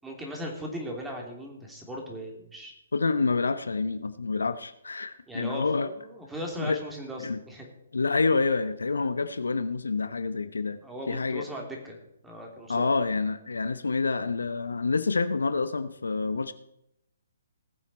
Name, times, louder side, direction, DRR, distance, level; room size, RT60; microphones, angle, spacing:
voice 1, 0.0-2.7 5.3-7.7 10.8-12.0 12.2-12.9, equal, 5° right, 0 dB, 2.9 m, -38 dB
voice 2, 2.9-5.9 6.6-6.8 7.2-7.4 7.9-10.8 11.1-11.4 12.7-16.5, left 4 dB, 80° left, 12 dB, 0.8 m, -27 dB
19.0 x 7.4 x 4.2 m, 0.81 s
figure-of-eight pair, 140°, 0 cm